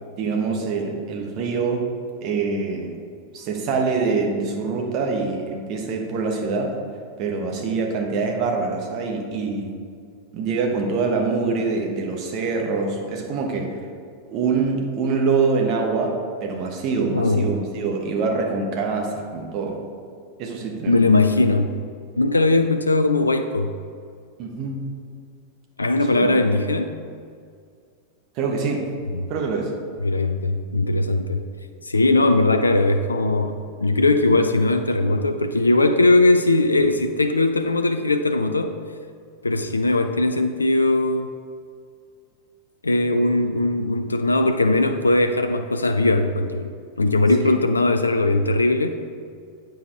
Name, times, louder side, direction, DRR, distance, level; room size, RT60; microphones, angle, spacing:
voice 1, 0.2-1.9 2.2-2.9 3.3-6.8 7.2-9.7 10.3-13.9 14.2-19.8 20.4-21.0 24.4-24.9 26.1-26.3 28.4-28.9 29.3-29.7 47.5-47.6, right 4 dB, 40° right, 2 dB, 1.2 m, -25 dB
voice 2, 17.1-17.5 20.9-21.7 22.2-23.7 25.8-26.9 29.1-29.2 30.0-31.4 31.8-38.8 39.4-41.3 42.8-46.7 47.0-48.9, left 2 dB, 80° left, 7 dB, 0.3 m, -19 dB
8.4 x 4.7 x 4.6 m, 2.2 s
figure-of-eight pair, 90°, 0 cm